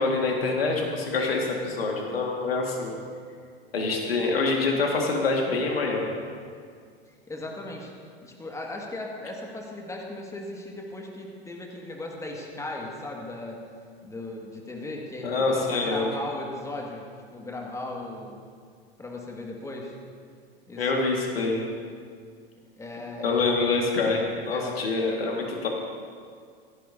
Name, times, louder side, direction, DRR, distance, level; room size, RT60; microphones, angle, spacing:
voice 1, 0.0-3.0 3.7-6.2 15.2-16.1 20.8-21.6 23.2-25.7, left 3 dB, 75° left, 0 dB, 2.0 m, -26 dB
voice 2, 7.3-7.9 8.2-13.6 14.0-18.4 19.0-20.0 20.7-21.1 22.8-23.4 24.5-24.8, left 2 dB, 10° left, -1 dB, 2.0 m, -37 dB
16.5 x 15.0 x 2.8 m, 2.1 s
figure-of-eight pair, 85°, 30 cm